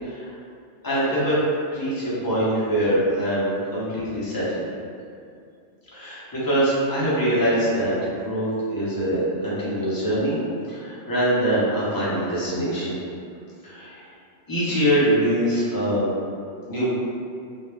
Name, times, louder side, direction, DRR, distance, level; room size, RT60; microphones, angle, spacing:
voice 1, 0.8-1.3 1.7-4.6 5.9-10.4 10.7-13.0 13.7-13.9 14.5-16.1 16.7-16.9, right 1 dB, 30° left, -10 dB, 0.4 m, -23 dB
2.3 x 2.0 x 3.1 m, 2.4 s
omnidirectional pair, 1.3 m